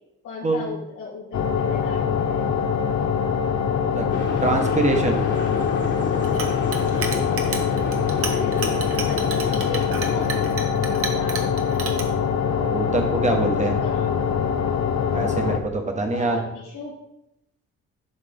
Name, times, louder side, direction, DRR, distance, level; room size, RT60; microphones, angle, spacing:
voice 1, 0.2-2.4 8.1-11.9 13.2-14.3 16.1-17.0, left 5 dB, 85° left, -8 dB, 2.3 m, -37 dB
sound 1, 1.3-15.6, left 7 dB, 60° left, 0.7 m, -23 dB
sound 2, 4.1-10.5, left 4 dB, 40° left, 1.5 m, -31 dB
voice 2, 4.4-5.2 12.6-13.8 15.1-16.4, right 2 dB, 25° right, 3 dB, 1.3 m, -24 dB
Chink clink, 6.2-12.0, right 5 dB, 50° right, 1.1 m, -31 dB
11.0 x 3.7 x 3.5 m, 0.83 s
cardioid pair, 90°, 30 cm